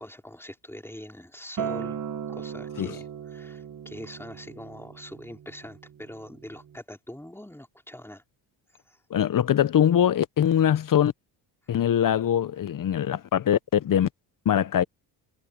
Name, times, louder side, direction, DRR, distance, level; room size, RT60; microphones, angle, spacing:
voice 1, 0.0-2.0 2.3-8.2 8.8-9.0, left 1 dB, 5° left, 5.0 m, -43 dB
Acoustic guitar, 1.6-6.8, right 8 dB, 45° right, 1.9 m, -37 dB
voice 2, 9.1-11.1 11.7-14.1 14.5-14.8, left 10 dB, 45° left, 0.9 m, -22 dB
supercardioid pair, 75°, 44 cm